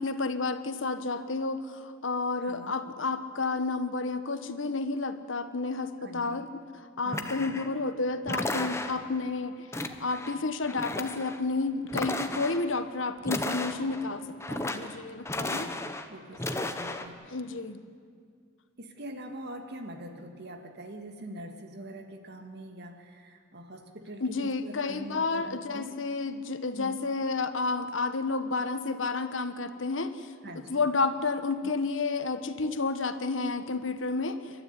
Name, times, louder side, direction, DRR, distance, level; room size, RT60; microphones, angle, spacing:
voice 1, 0.0-1.6 2.0-6.5 7.0-9.5 10.0-15.7 17.3-17.8 24.2-30.1 30.7-34.4, left 3 dB, 70° left, 10 dB, 1.3 m, -31 dB
voice 2, 2.4-2.8 6.0-6.5 7.0-7.4 15.5-17.2 18.8-26.0 26.8-27.0 30.4-30.9, right 1 dB, 55° right, 5 dB, 2.3 m, -44 dB
sound 1, 7.1-7.8 8.3-9.2 9.7-10.3 10.6-11.4 11.9-12.6 13.2-14.1 14.4-15.0 15.3-16.1 16.3-17.1, left 2 dB, 15° left, 1.1 m, -34 dB
28.5 x 13.0 x 9.8 m, 2.1 s
head